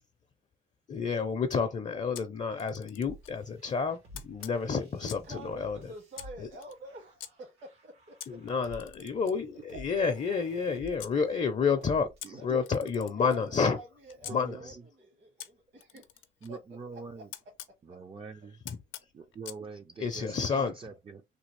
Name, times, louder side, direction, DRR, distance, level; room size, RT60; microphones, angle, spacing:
voice 1, 0.9-5.9 6.4-6.5 8.3-12.1 12.4-13.8 14.3-14.8 18.7-18.8 20.0-20.7, left 5 dB, 35° left, 0.5 m, -30 dB
Camera, 2.1-3.4 4.1-5.4 6.1-7.3 8.2-11.2 12.2-14.4 15.4-17.8 18.7-19.6, left 11 dB, 85° left, 0.5 m, -48 dB
sound 1, 3.1-12.4, equal, 90° right, 1.7 m, -52 dB
voice 2, 5.0-8.4 11.7-11.9 12.4-12.6 13.2-13.4 13.7-17.3 17.7-18.0, right 1 dB, 65° right, 1.3 m, -49 dB
voice 3, 9.7-10.1 12.2-12.8 14.3-14.7 16.4-17.3 17.8-18.6 19.1-21.2, right 4 dB, 30° right, 0.4 m, -44 dB
3.3 x 2.3 x 3.1 m
cardioid pair, 90°, 20 cm